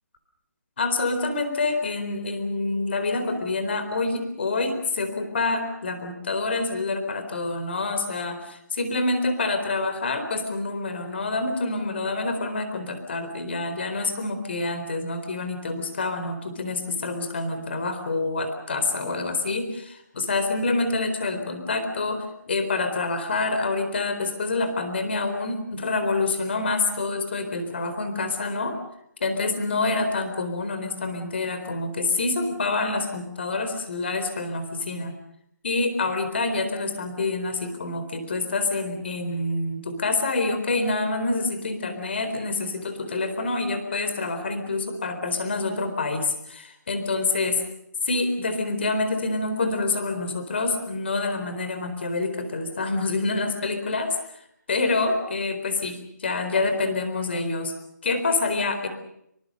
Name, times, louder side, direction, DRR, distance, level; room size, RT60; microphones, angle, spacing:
voice 1, 0.8-28.8 29.2-35.1 35.6-47.6 48.0-54.4 54.7-57.7 58.0-58.9, left 3 dB, 35° left, 8 dB, 4.2 m, -27 dB
26.0 x 23.5 x 6.6 m, 0.76 s
hypercardioid pair, 175°, 10 cm